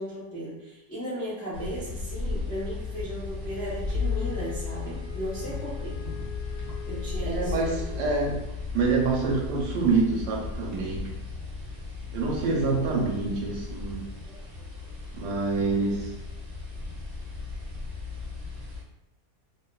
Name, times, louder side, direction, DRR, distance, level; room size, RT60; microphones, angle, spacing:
voice 1, 0.0-6.0 6.9-7.8 14.3-14.6, equal, 10° left, -10 dB, 0.4 m, -36 dB
sound 1, 1.5-18.8, left 4 dB, 10° right, 0.8 m, -35 dB
Wind instrument woodwind instrument, 3.9-8.1, left 8 dB, 90° left, 1.4 m, -44 dB
voice 2, 7.2-8.4 8.7-11.1 12.1-14.0 15.1-16.1, right 4 dB, 75° right, -2 dB, 1.2 m, -26 dB
2.9 x 2.2 x 2.2 m, 0.90 s
omnidirectional pair, 2.0 m